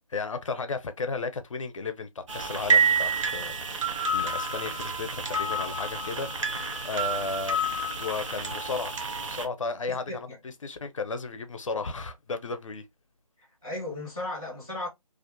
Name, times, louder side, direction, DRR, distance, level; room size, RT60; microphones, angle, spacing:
voice 1, 0.1-3.5 3.7-7.6 8.0-10.3 10.6-12.8, left 4 dB, 60° left, 0.5 m, -34 dB
sound 1, 2.3-9.5, right 3 dB, 60° right, 0.6 m, -28 dB
voice 2, 9.9-10.4 13.4-14.9, left 2 dB, 10° right, 0.4 m, -36 dB
2.4 x 2.1 x 2.4 m
figure-of-eight pair, 165°, 19 cm